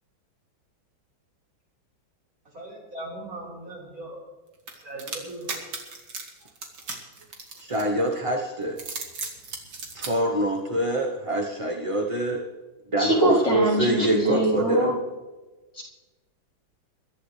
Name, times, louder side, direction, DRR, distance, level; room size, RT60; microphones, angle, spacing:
voice 1, 2.4-4.2 4.8-5.6, right 2 dB, 45° right, -4 dB, 5.0 m, -39 dB
sound 1, 4.7-8.1 8.6-10.1, right 4 dB, 80° right, 3.0 m, -36 dB
voice 2, 7.6-8.8 9.9-12.4 12.9-14.9, right 1 dB, 25° right, 1 dB, 0.7 m, -25 dB
voice 3, 13.0-15.0 15.7-15.8, right 1 dB, 40° left, -6 dB, 4.6 m, -22 dB
22.0 x 13.0 x 3.3 m, 1.2 s
omnidirectional pair, 2.1 m